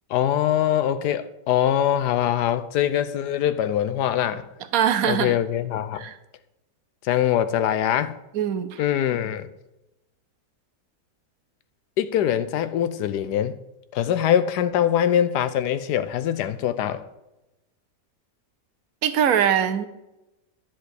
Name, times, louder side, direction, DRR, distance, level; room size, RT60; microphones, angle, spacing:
voice 1, 0.1-4.5 5.1-6.0 7.0-8.2 8.8-9.5 12.0-13.6 13.9-17.0, left 10 dB, 75° left, 1.2 m, -23 dB
voice 2, 4.7-5.3 5.9-6.2 8.3-8.8 19.0-19.9, right 9 dB, 65° right, 1.0 m, -22 dB
10.5 x 7.5 x 4.4 m
omnidirectional pair, 1.8 m